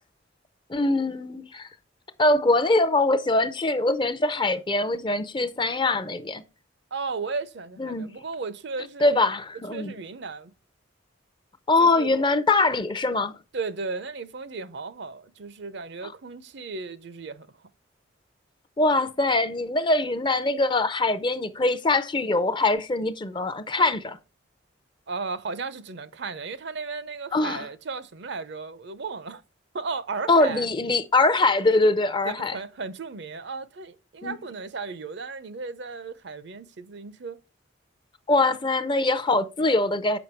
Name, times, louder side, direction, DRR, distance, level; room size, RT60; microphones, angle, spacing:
voice 1, 0.7-1.7 2.2-6.4 7.8-8.1 9.0-9.9 11.7-13.3 18.8-24.2 27.3-27.6 30.3-32.6 34.2-34.4 38.3-40.2, left 2 dB, 25° left, 0.5 m, -23 dB
voice 2, 6.9-9.1 9.7-10.5 11.8-12.1 13.5-17.5 25.1-29.4 29.7-30.7 32.2-37.4, right 4 dB, 60° right, 0.6 m, -35 dB
7.1 x 5.5 x 4.4 m
head